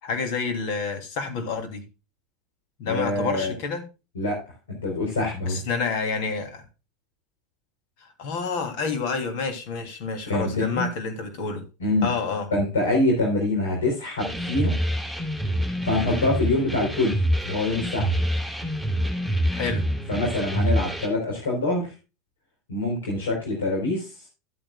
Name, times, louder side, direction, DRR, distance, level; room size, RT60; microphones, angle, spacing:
voice 1, 0.0-1.8 2.8-3.8 5.5-6.6 8.0-11.6 12.0-12.5 19.5-19.8, left 4 dB, 55° left, 6 dB, 3.1 m, -29 dB
voice 2, 2.9-3.5 4.1-5.6 10.3-10.9 11.8-12.1 12.5-14.7 15.8-18.1 20.1-21.9 22.7-24.1, left 2 dB, 75° left, -1 dB, 4.0 m, -25 dB
sound 1, 14.2-21.1, equal, 5° left, 3.5 m, -26 dB
13.5 x 9.0 x 2.3 m, 0.30 s
figure-of-eight pair, 80°, 0 cm